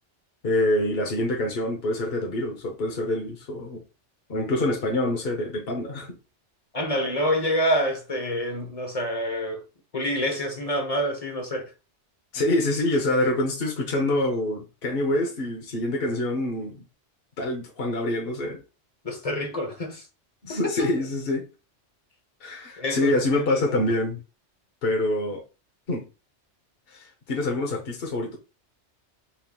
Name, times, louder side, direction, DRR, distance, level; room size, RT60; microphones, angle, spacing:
voice 1, 0.4-3.8 4.3-6.2 12.3-16.9 17.4-18.6 20.4-21.5 22.4-24.2 24.8-25.4 25.9-26.1 26.9-28.4, left 1 dB, 55° left, 1.2 m, -26 dB
voice 2, 6.7-9.6 9.9-11.7 19.0-20.0 20.5-20.9 22.8-23.8, equal, 35° left, 1.2 m, -27 dB
4.4 x 3.6 x 2.3 m
omnidirectional pair, 1.2 m